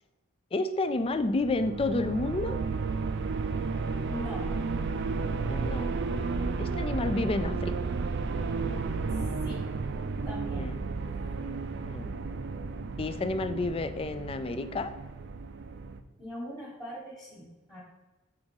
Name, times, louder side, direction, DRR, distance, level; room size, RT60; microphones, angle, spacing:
voice 1, 0.5-2.6 5.5-5.9 6.6-7.7 10.6-10.8 11.4-12.2 13.0-14.9, left 2 dB, 25° left, 10 dB, 0.3 m, -30 dB
sound 1, 1.0-16.0, right 4 dB, 55° right, 0.4 m, -33 dB
voice 2, 4.0-4.5 9.4-9.7 10.2-10.7 16.2-17.8, equal, ahead, -8 dB, 1.3 m, -41 dB
5.0 x 3.5 x 5.5 m, 1.1 s
head